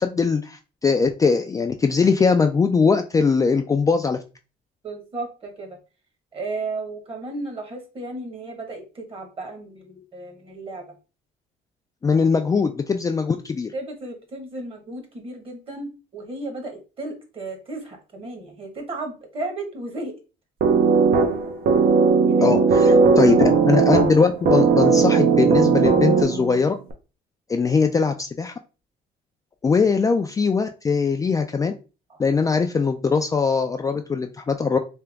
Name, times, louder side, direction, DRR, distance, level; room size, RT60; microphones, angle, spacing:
voice 1, 0.0-4.2 12.0-13.7 22.4-26.7 27.5-28.5 29.6-31.7 32.2-34.8, left 5 dB, 20° left, 5 dB, 0.3 m, -21 dB
voice 2, 4.8-5.8 6.3-10.8 13.7-20.1 22.2-23.5 32.1-32.2, right 2 dB, 35° right, 3 dB, 1.4 m, -34 dB
sound 1, 20.6-26.6, right 5 dB, 60° right, 0.8 m, -17 dB
3.5 x 2.9 x 3.4 m, 0.32 s
cardioid pair, 110°, 17 cm